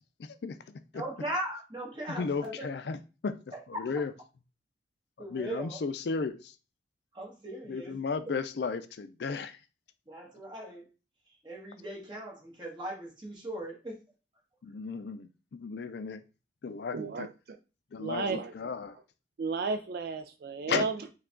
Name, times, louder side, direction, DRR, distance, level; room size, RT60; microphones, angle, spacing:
voice 1, 0.9-2.7 3.5-4.1 5.2-5.8 7.1-8.0 10.1-10.9 11.4-14.0, right 1 dB, 25° right, 1.4 m, -39 dB
voice 2, 2.2-3.0 3.2-3.3 3.8-4.1 5.3-6.4 7.7-9.6 14.6-15.3 15.6-16.2 16.6-17.3 17.9-18.9 20.7-20.9, left 5 dB, 65° left, 0.4 m, -34 dB
voice 3, 16.9-17.6 18.0-19.0 19.4-21.1, right 4 dB, 55° right, 0.3 m, -34 dB
4.6 x 2.3 x 3.7 m
head